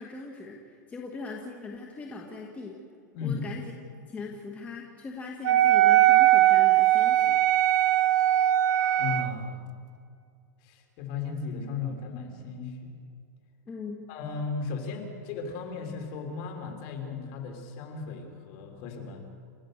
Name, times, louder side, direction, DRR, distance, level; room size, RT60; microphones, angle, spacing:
voice 1, 0.0-2.8 3.2-3.7 4.1-7.4 13.7-14.0, left 4 dB, 15° left, 0 dB, 1.7 m, -40 dB
Wind instrument woodwind instrument, 5.4-9.4, right 14 dB, 75° right, 0.8 m, -20 dB
voice 2, 9.0-9.6 10.6-12.9 14.1-19.3, left 4 dB, 40° left, 3 dB, 3.7 m, -35 dB
29.5 x 14.5 x 6.6 m, 2.4 s
supercardioid pair, 160°, 10 cm